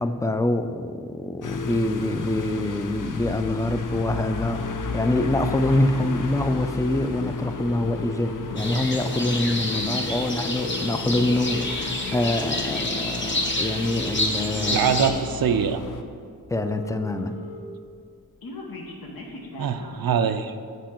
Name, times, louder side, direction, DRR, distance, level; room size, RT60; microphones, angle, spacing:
voice 1, 0.0-15.0 16.5-17.4, left 1 dB, 10° left, 9 dB, 0.3 m, -25 dB
sound 1, 1.4-16.0, left 4 dB, 60° left, 0.6 m, -33 dB
sound 2, 1.6-2.6 3.8-3.9 4.1-4.2 4.4-5.9 6.4-6.6 7.4-8.6 9.3-9.5 10.4-11.6 12.8-12.9 13.4-14.6 15.3-15.4 15.7-15.8 16.0-16.1 16.3-17.6 17.9-20.1, left 3 dB, 80° left, 1.0 m, -39 dB
sound 3, 8.6-15.1, left 1 dB, 30° left, 0.9 m, -29 dB
voice 2, 14.7-15.8 19.6-20.5, right 7 dB, 80° right, 9 dB, 0.5 m, -23 dB
8.1 x 4.6 x 4.4 m, 2.1 s
wide cardioid pair, 65°, 35 cm